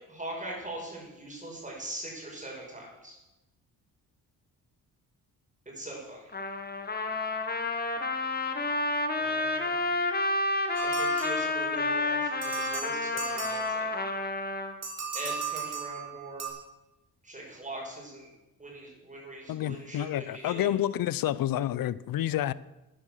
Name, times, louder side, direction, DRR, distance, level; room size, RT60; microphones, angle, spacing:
voice 1, 0.1-3.2 5.7-6.3 9.2-9.7 10.8-13.9 15.1-16.5 17.2-18.3 18.6-20.7, right 1 dB, 20° right, -2 dB, 5.6 m, -41 dB
Trumpet, 6.3-14.7, left 2 dB, 25° left, 1.4 m, -30 dB
sound 1, 10.8-11.9 12.4-14.1 14.8-16.5, right 6 dB, 45° right, 4.0 m, -37 dB
voice 2, 19.5-22.5, left 12 dB, 70° left, 19 dB, 0.6 m, -29 dB
11.5 x 10.5 x 7.4 m, 1.0 s
cardioid pair, 120°, 36 cm